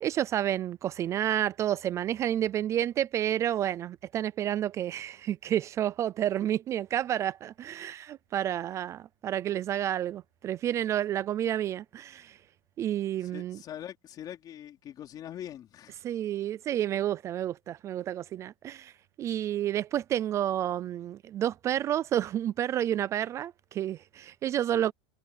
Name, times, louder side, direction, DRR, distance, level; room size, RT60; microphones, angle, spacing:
voice 1, 0.0-12.4 12.8-13.6 16.0-18.9 19.2-24.9, right 11 dB, 15° right, 0.4 m, -30 dB
voice 2, 13.2-16.0, left 11 dB, 25° left, 4.0 m, -43 dB
supercardioid pair, 165°, 17 cm